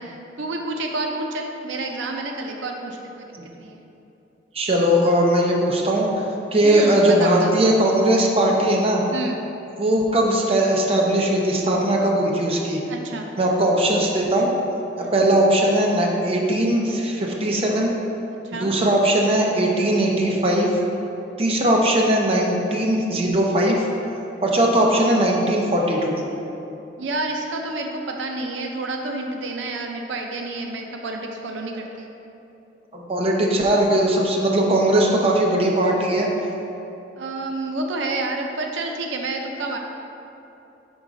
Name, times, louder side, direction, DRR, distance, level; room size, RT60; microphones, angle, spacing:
voice 1, 0.0-3.3 3.6-3.8 6.6-7.5 9.1-9.4 12.9-13.3 15.0-15.1 18.4-18.7 27.0-32.1 37.2-39.8, right 2 dB, 85° right, 2 dB, 0.5 m, -29 dB
voice 2, 4.5-6.2 6.5-9.0 9.8-12.8 13.4-14.5 15.0-17.9 18.6-20.7 21.4-23.9 24.4-26.1 32.9-36.3, right 1 dB, 30° right, -1 dB, 0.6 m, -19 dB
5.4 x 3.6 x 5.0 m, 2.9 s
head